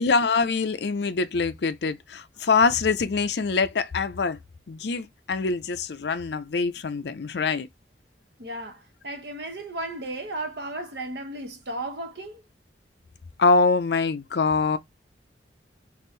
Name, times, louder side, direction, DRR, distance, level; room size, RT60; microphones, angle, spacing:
voice 1, 0.0-4.4 4.7-7.7 13.4-14.8, left 4 dB, 65° left, 0.5 m, -24 dB
voice 2, 8.4-12.4, right 2 dB, 65° right, 1.0 m, -35 dB
3.6 x 2.5 x 3.1 m
head